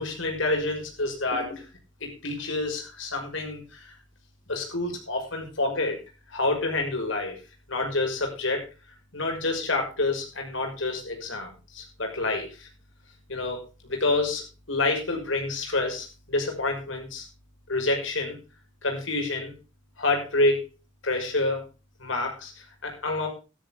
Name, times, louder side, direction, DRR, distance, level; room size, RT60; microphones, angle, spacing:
voice 1, 0.0-1.6 2.0-3.9 4.5-6.0 6.3-7.4 7.7-8.6 9.1-12.7 13.3-17.3 17.7-18.4 18.8-19.5 20.0-20.7 21.0-21.6 22.0-23.3, left 2 dB, 75° left, 3 dB, 6.0 m, -28 dB
14.0 x 13.0 x 3.6 m, 0.31 s
head